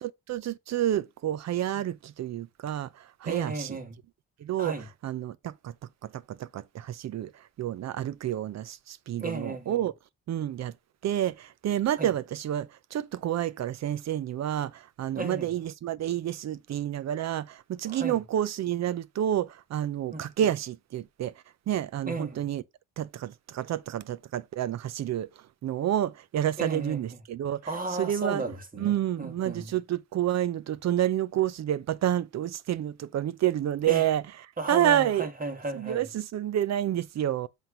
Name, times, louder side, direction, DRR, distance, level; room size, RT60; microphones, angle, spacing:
voice 1, 0.0-3.8 4.4-4.8 5.0-5.7 6.0-7.3 7.6-9.9 10.3-10.7 11.0-21.3 21.7-22.6 23.0-25.3 25.6-27.6 28.0-28.4 28.8-34.2 34.7-35.3 35.7-37.5, right 11 dB, 60° right, 0.8 m, -29 dB
voice 2, 3.2-4.0 4.6-4.9 9.2-9.8 12.0-12.1 15.1-15.5 17.9-18.2 20.1-20.5 22.0-22.5 26.6-27.2 27.7-29.8 33.9-34.0 34.6-36.1, right 3 dB, 30° right, 2.4 m, -35 dB
7.9 x 3.5 x 5.6 m
cardioid pair, 90°, 30 cm